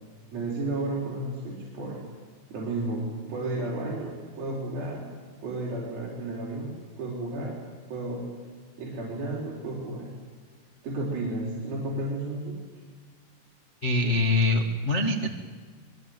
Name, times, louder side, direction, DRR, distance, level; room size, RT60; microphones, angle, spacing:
voice 1, 0.3-2.0 2.5-5.1 5.4-7.6 7.9-8.4 8.8-10.1 10.8-12.6, right 2 dB, 60° right, -3 dB, 5.9 m, -32 dB
voice 2, 13.8-15.3, left 2 dB, 35° left, 2 dB, 1.0 m, -24 dB
25.5 x 22.0 x 9.3 m, 1.5 s
omnidirectional pair, 4.9 m